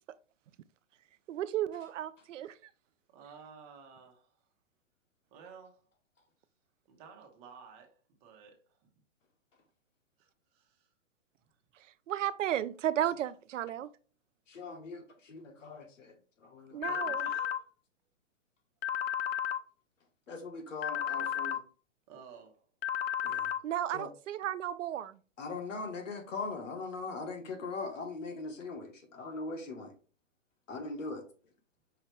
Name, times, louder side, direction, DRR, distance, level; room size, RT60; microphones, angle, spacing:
voice 1, 1.3-2.6 12.1-13.9 16.7-17.2 23.6-25.2, right 11 dB, 80° right, 0.5 m, -33 dB
voice 2, 3.1-4.3 5.3-5.8 6.9-8.8 10.2-10.9 16.7-17.6 22.1-22.6, right 5 dB, 30° right, 1.2 m, -53 dB
voice 3, 14.5-16.8 20.3-21.6 23.2-23.5 23.9-24.1 25.4-29.9 30.7-31.3, left 3 dB, 85° left, 1.3 m, -40 dB
sound 1, 16.8-17.6 18.8-19.6 20.8-21.6 22.8-23.6, left 10 dB, 50° left, 0.5 m, -32 dB
5.7 x 2.7 x 3.2 m
hypercardioid pair, 140°, 37 cm